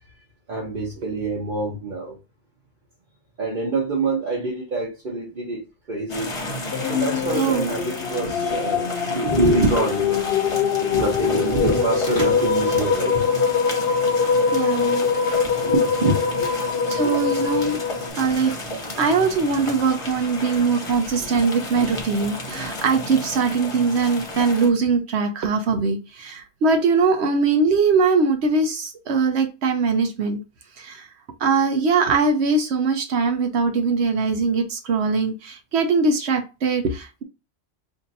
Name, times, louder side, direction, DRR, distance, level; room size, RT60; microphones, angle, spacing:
voice 1, 0.5-2.2 3.4-5.6 5.9-6.5 6.9-10.2 10.8-13.4 15.6-16.5, right 2 dB, 50° right, 1.1 m, -25 dB
sound 1, 6.1-24.7, left 2 dB, 35° left, 0.8 m, -33 dB
sound 2, 6.7-18.1, left 6 dB, 70° left, 0.8 m, -23 dB
voice 2, 7.4-7.7 11.7-11.8 14.5-15.1 16.9-17.8 18.1-30.4 30.8-31.1 31.4-37.2, right 4 dB, 85° right, 0.9 m, -21 dB
2.8 x 2.6 x 3.9 m
omnidirectional pair, 1.1 m